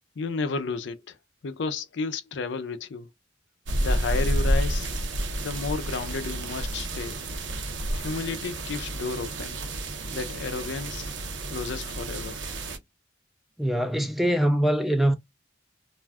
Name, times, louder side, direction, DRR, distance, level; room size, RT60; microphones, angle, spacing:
voice 1, 0.2-1.2 1.4-3.1 3.8-4.9 5.4-7.2 7.6-7.7 7.9-9.6 10.1-11.1 11.5-12.4, left 4 dB, 60° left, 0.4 m, -32 dB
sound 1, 3.7-12.8, right 1 dB, 65° right, 0.7 m, -30 dB
voice 2, 13.6-15.2, equal, ahead, 0.3 m, -23 dB
2.4 x 2.2 x 3.4 m
head